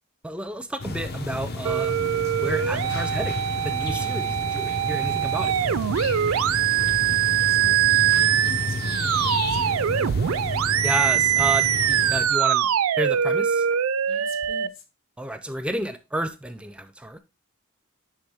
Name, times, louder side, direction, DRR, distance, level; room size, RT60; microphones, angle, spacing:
voice 1, 0.2-2.0 2.4-5.6 10.8-12.7 13.0-13.7 15.2-17.2, right 1 dB, 5° right, 0.4 m, -31 dB
sound 1, 0.8-12.3, left 2 dB, 50° left, 0.6 m, -31 dB
sound 2, 1.7-14.7, right 10 dB, 75° right, 0.4 m, -23 dB
voice 2, 6.2-9.8 14.1-14.8, left 3 dB, 70° left, 1.4 m, -46 dB
9.8 x 3.4 x 3.4 m
head